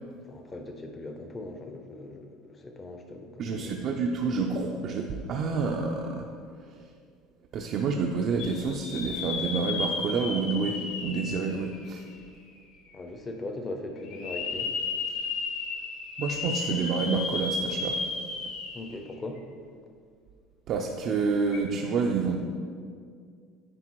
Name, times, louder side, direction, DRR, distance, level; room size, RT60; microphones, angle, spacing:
voice 1, 0.3-3.7 12.9-14.7 18.7-19.4, left 2 dB, 20° left, 4 dB, 0.7 m, -39 dB
voice 2, 3.4-6.3 6.6-6.8 7.5-12.0 16.2-18.0 20.7-22.4, right 4 dB, 40° right, 1 dB, 0.5 m, -28 dB
sound 1, 8.4-12.4 12.9-13.0 14.0-19.0 19.4-19.5 21.4-21.6, left 4 dB, 60° left, 1.5 m, -33 dB
9.8 x 5.0 x 4.6 m, 2.1 s
cardioid pair, 170°, 0 cm